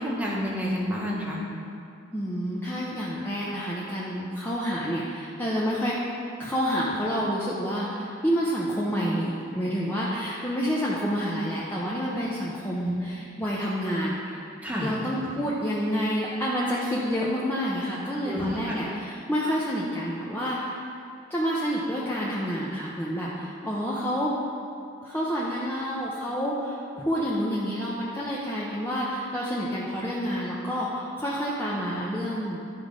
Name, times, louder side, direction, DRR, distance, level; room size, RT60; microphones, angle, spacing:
voice 1, 0.0-1.4 12.8-12.9 14.6-14.9 18.2-18.7, equal, 10° right, -5 dB, 1.2 m, -29 dB
voice 2, 2.1-6.0 6.4-14.4 14.8-20.8 21.3-24.3 25.0-32.6, equal, 10° left, -7 dB, 0.7 m, -28 dB
11.5 x 5.0 x 3.7 m, 2.5 s
head